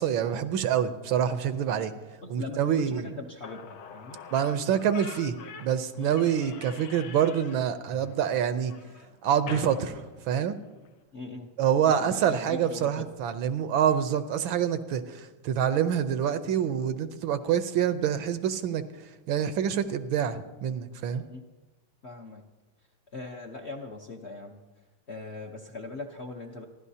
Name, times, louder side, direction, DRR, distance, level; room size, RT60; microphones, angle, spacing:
voice 1, 0.0-1.9 2.3-3.1 4.3-8.7 9.2-10.5 11.6-18.8 19.3-21.2, right 9 dB, 75° right, 10 dB, 1.5 m, -26 dB
voice 2, 2.2-4.2 6.0-6.1 11.1-11.5 11.9-13.1 21.1-21.4 22.0-22.4 23.1-24.6 25.1-26.6, left 3 dB, 45° left, 1 dB, 0.9 m, -41 dB
Slam / Squeak, 3.1-3.2 3.4-10.9, left 6 dB, 80° left, 1.8 m, -45 dB
28.5 x 11.5 x 2.8 m, 1.1 s
omnidirectional pair, 2.3 m